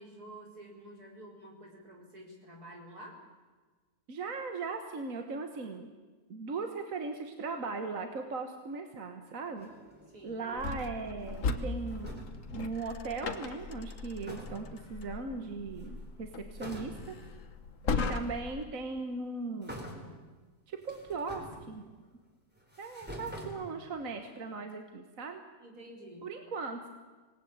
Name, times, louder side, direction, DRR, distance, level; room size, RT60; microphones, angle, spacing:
voice 1, 0.0-3.2 10.1-10.4 25.6-26.3, right 1 dB, 85° right, 1 dB, 5.0 m, -50 dB
voice 2, 4.1-5.9 6.3-9.7 10.2-12.3 12.5-17.2 17.9-19.8 20.7-21.8 22.8-25.4 26.2-26.9, right 4 dB, 60° right, 6 dB, 1.9 m, -38 dB
sound 1, 9.6-10.7 11.1-12.5 13.9-14.0 14.2-14.9 15.7-16.2 16.6-17.3 18.2-18.3 19.6-20.3 20.8-22.1 22.6-24.1, equal, 5° right, 3.8 m, -47 dB
sound 2, 10.6-18.6, left 4 dB, 55° left, 1.7 m, -38 dB
25.5 x 19.5 x 8.9 m, 1.3 s
omnidirectional pair, 1.6 m